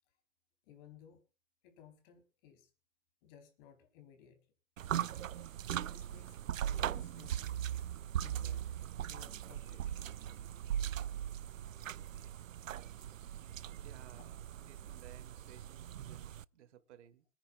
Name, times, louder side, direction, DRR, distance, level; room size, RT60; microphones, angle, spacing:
voice 1, 0.6-1.2 1.6-2.7 3.2-4.4 5.9-7.5 8.2-10.1, left 9 dB, 45° left, 7 dB, 4.0 m, -59 dB
sound 1, 4.8-16.5, right 10 dB, 90° right, 0.5 m, -39 dB
voice 2, 13.8-14.4 14.7-17.2, right 10 dB, 60° right, 13 dB, 1.8 m, -58 dB
27.5 x 10.0 x 2.4 m, 0.34 s
hypercardioid pair, 120°, 38 cm